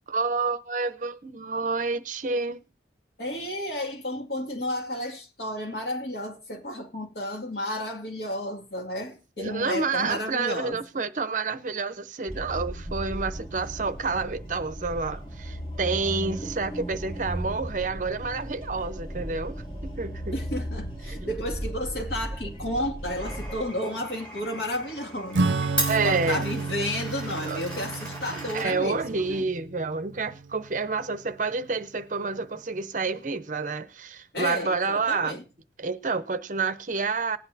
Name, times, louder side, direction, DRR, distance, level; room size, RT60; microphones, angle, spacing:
voice 1, 0.1-2.7 9.4-20.3 21.1-21.2 25.8-26.5 27.4-27.6 28.5-35.4 35.8-37.4, right 4 dB, 45° right, 0.6 m, -29 dB
voice 2, 3.2-10.8 16.4-16.5 20.3-25.6 26.0-29.4 34.3-35.4, left 1 dB, 65° left, 2.2 m, -32 dB
sound 1, 12.3-23.6, equal, 30° left, 3.1 m, -36 dB
Glass, 23.2-29.4, right 1 dB, 5° left, 4.1 m, -37 dB
Acoustic guitar / Strum, 25.3-31.3, right 3 dB, 85° right, 0.5 m, -31 dB
19.5 x 8.7 x 2.7 m
head